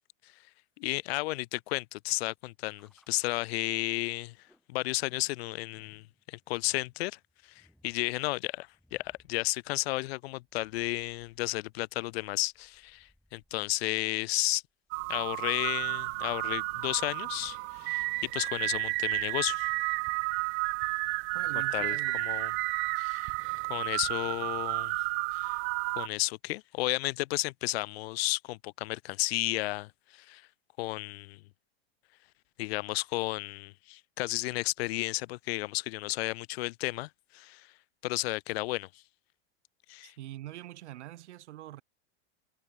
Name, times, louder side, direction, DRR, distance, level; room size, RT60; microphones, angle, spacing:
voice 1, 0.8-4.3 4.7-7.2 7.5-14.6 15.1-19.7 21.7-22.5 23.0-23.3 23.7-25.0 25.3-25.6 26.0-30.4 30.8-31.4 32.6-37.7 38.0-38.9 39.9-40.1, left 20 dB, 60° left, 1.0 m, -33 dB
sound 1, 2.8-15.4, equal, ahead, 6.5 m, -69 dB
sound 2, 14.9-26.1, right 29 dB, 35° right, 0.6 m, -32 dB
voice 2, 21.3-22.2 40.0-41.8, right 14 dB, 75° right, 5.4 m, -44 dB
supercardioid pair, 145°, 34 cm